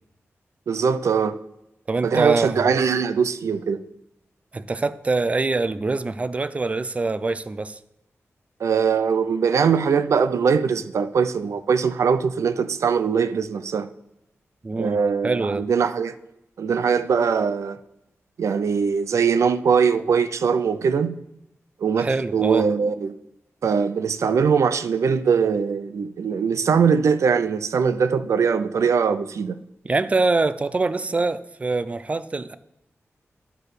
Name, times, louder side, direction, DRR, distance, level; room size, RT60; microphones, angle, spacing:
voice 1, 0.7-1.4 2.0-3.8 8.6-13.9 14.8-16.1 16.6-17.8 18.4-21.2 21.8-23.2 23.6-29.6, right 6 dB, 85° right, 0.4 m, -21 dB
voice 2, 1.9-2.7 4.5-7.8 14.6-15.0 15.2-15.6 22.0-22.7 29.8-32.5, right 3 dB, 25° right, 0.4 m, -24 dB
11.0 x 4.5 x 4.9 m
wide cardioid pair, 165°, 5 cm